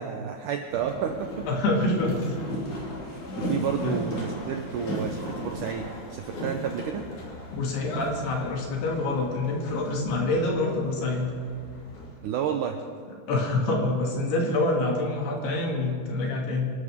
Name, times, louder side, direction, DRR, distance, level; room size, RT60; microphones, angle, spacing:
voice 1, 0.0-1.5 3.1-7.1 12.2-12.8, right 8 dB, 85° right, 4 dB, 1.8 m, -31 dB
Boat Water vehicle, 0.7-12.1, left 1 dB, 50° left, 4.1 m, -36 dB
voice 2, 1.5-2.4 3.8-3.9 7.5-11.3 13.3-16.7, left 2 dB, 80° left, 0 dB, 4.2 m, -26 dB
26.5 x 13.0 x 3.6 m, 2.1 s
omnidirectional pair, 4.6 m